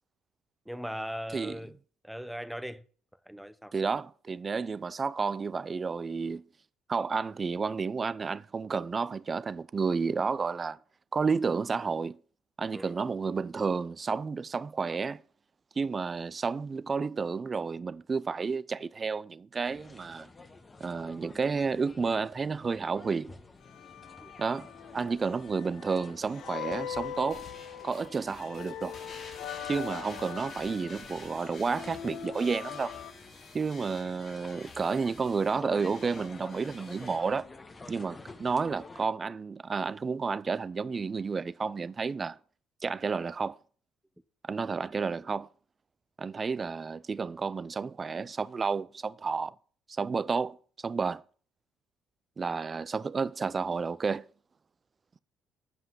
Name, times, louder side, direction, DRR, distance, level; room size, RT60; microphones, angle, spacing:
voice 1, 0.7-1.7 2.0-2.8 3.3-3.8 12.7-13.0 24.2-24.3, equal, ahead, 0.7 m, -39 dB
voice 2, 3.7-6.4 6.9-10.8 11.1-12.2 12.6-15.2 15.8-20.3 20.8-23.3 24.4-27.5 27.8-29.0 29.6-32.9 33.5-37.5 37.9-42.4 42.8-43.6 44.5-45.5 46.2-49.5 49.9-51.2 52.4-54.3, right 5 dB, 35° right, 0.4 m, -31 dB
sound 1, 19.6-39.1, left 3 dB, 25° left, 1.1 m, -51 dB
sound 2, 23.6-33.1, left 9 dB, 70° left, 0.6 m, -42 dB
sound 3, 26.9-37.2, left 4 dB, 55° left, 3.7 m, -50 dB
7.9 x 5.5 x 5.9 m
supercardioid pair, 70°, 0 cm